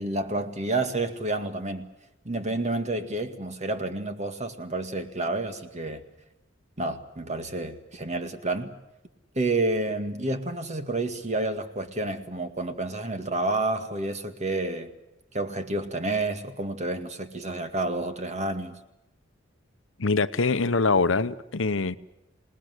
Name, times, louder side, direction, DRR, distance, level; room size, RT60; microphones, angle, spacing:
voice 1, 0.0-1.9 2.2-6.0 6.8-8.7 9.4-14.9 15.3-18.8, right 2 dB, 35° right, 2.1 m, -29 dB
voice 2, 20.0-22.0, left 3 dB, 70° left, 0.9 m, -24 dB
27.0 x 20.0 x 8.0 m
head